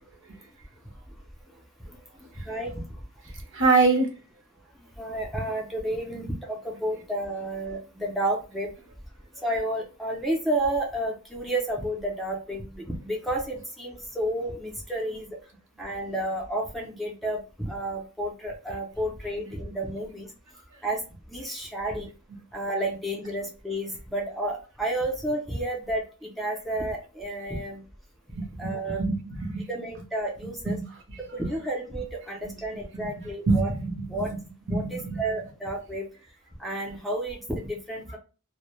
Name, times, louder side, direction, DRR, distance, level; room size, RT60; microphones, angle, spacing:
voice 1, 1.8-3.0 5.0-8.7 9.4-15.4 15.8-20.3 20.8-22.1 22.5-27.8 28.6-29.0 29.7-30.8 31.3-33.7 34.1-34.3 34.7-36.1 36.6-38.2, right 1 dB, ahead, -1 dB, 0.5 m, -31 dB
voice 2, 3.5-4.1 9.3-9.4 28.3-29.6 30.4-31.2 32.9-35.2, right 3 dB, 60° right, 3 dB, 0.7 m, -26 dB
2.1 x 2.0 x 2.9 m, 0.35 s
head